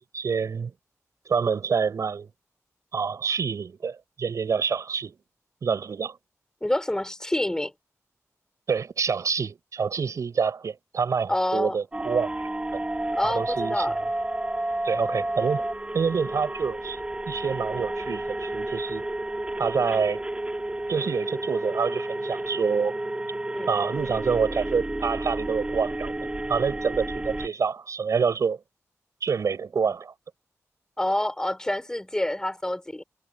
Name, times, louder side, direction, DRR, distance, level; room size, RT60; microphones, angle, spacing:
voice 1, 0.1-0.7 1.3-2.3 2.9-5.1 5.6-6.2 8.7-12.3 13.2-14.0 14.8-15.7 15.9-17.0 17.3-19.0 19.6-20.2 20.9-23.0 23.7-26.1 26.5-28.6 29.2-30.1, right 5 dB, 85° right, 6.6 m, -27 dB
voice 2, 6.6-7.7 11.3-11.8 13.2-13.9 23.5-23.7 31.0-33.0, left 1 dB, 10° left, 4.7 m, -27 dB
sound 1, 11.9-27.5, right 1 dB, 20° right, 1.7 m, -31 dB
wide cardioid pair, 120°, 5 cm